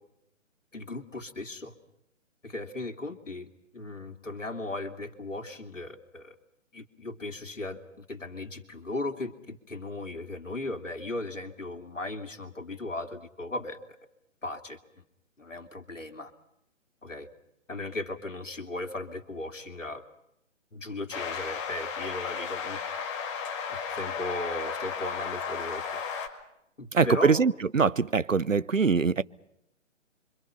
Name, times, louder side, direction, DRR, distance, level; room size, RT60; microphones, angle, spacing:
voice 1, 0.7-1.7 2.4-3.5 3.7-6.3 6.7-14.0 14.4-15.0 15.4-16.3 17.0-17.3 17.7-20.0 20.7-22.8 23.7-26.0 26.8-27.4, left 2 dB, 75° left, 2.9 m, -37 dB
sound 1, 21.1-26.3, left 6 dB, 25° left, 2.3 m, -34 dB
voice 2, 26.9-29.2, right 5 dB, 80° right, 0.9 m, -23 dB
28.0 x 25.0 x 5.8 m
figure-of-eight pair, 135°, 38 cm